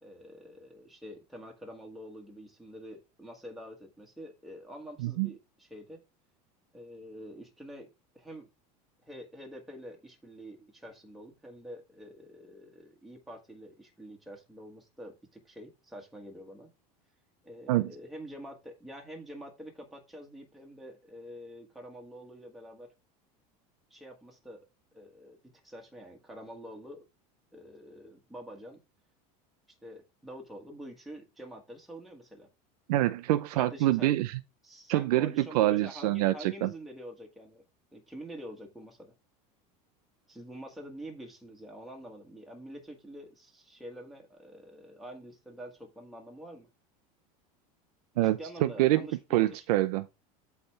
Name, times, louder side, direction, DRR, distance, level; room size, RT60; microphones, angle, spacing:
voice 1, 0.0-6.0 6.7-7.9 8.1-8.5 9.0-16.7 17.4-22.9 23.9-24.7 24.9-25.4 25.6-27.1 27.5-28.8 29.7-32.5 33.5-34.1 34.6-37.6 37.9-39.1 40.3-46.7 48.1-49.7, equal, ahead, 1.5 m, -46 dB
voice 2, 32.9-34.4 34.9-36.7 48.2-49.0 49.3-50.1, right 15 dB, 85° right, 0.6 m, -26 dB
8.0 x 3.4 x 5.7 m
supercardioid pair, 130°, 19 cm